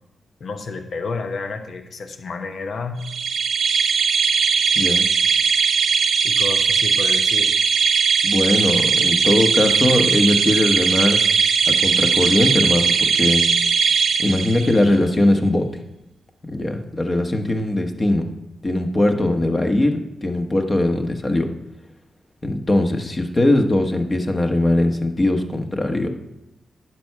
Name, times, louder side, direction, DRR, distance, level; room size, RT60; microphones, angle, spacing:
voice 1, 0.4-3.0 6.2-7.5, left 4 dB, 65° left, 7 dB, 1.0 m, -30 dB
sound 1, 3.0-14.9, right 6 dB, 80° right, 0.8 m, -19 dB
voice 2, 4.7-5.1 8.2-11.2 11.7-13.5 14.2-15.7 16.5-18.3 18.6-21.5 22.4-26.1, left 1 dB, 30° left, 4 dB, 1.3 m, -20 dB
10.5 x 4.8 x 6.8 m, 0.90 s
cardioid pair, 65°, 0 cm